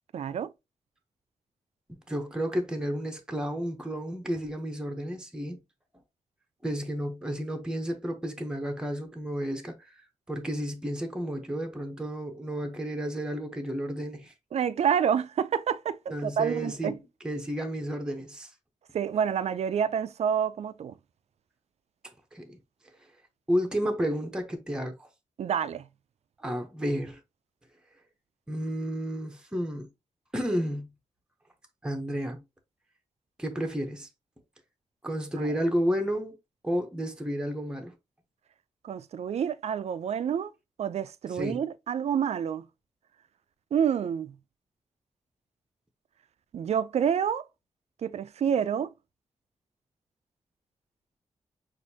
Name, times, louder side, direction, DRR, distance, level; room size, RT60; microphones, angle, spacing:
voice 1, 0.1-0.5 14.5-16.9 18.9-20.9 25.4-25.9 35.4-35.5 38.8-40.5 40.8-42.6 43.7-44.4 46.5-47.4 48.0-48.9, right 8 dB, 65° right, 0.4 m, -28 dB
voice 2, 2.1-5.6 6.6-9.7 10.3-14.3 16.1-18.5 22.3-22.6 23.5-25.1 26.4-27.2 28.5-29.9 30.3-30.9 31.8-32.4 33.4-34.1 35.0-36.4 36.6-37.9 41.3-41.6, equal, 5° right, 0.8 m, -31 dB
6.3 x 2.6 x 2.8 m
wide cardioid pair, 145°, 12 cm